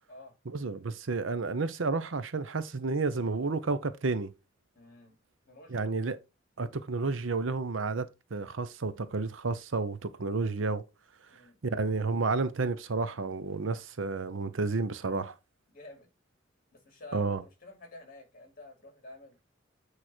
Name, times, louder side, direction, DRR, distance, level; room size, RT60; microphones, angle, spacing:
voice 1, 0.5-4.3 5.7-6.2 6.6-10.8 11.6-15.3 17.1-17.4, right 3 dB, 85° right, 0.8 m, -31 dB
voice 2, 4.7-5.2 5.5-5.9 11.3-11.6 15.7-16.1 16.7-19.4, left 2 dB, 45° left, 2.9 m, -50 dB
8.6 x 3.2 x 4.3 m
head